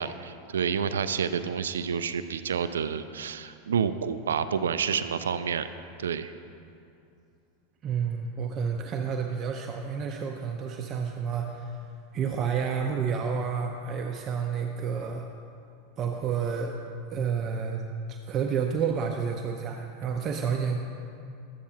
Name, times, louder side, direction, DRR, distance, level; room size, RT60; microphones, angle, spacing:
voice 1, 0.0-5.7 6.0-6.3, right 7 dB, 80° right, 12 dB, 0.3 m, -29 dB
voice 2, 7.8-11.9 12.1-15.3 16.0-16.8 17.1-17.8 18.1-20.8, right 6 dB, 40° right, 3 dB, 0.6 m, -30 dB
12.0 x 8.4 x 2.9 m, 2.6 s
hypercardioid pair, 95°, 0 cm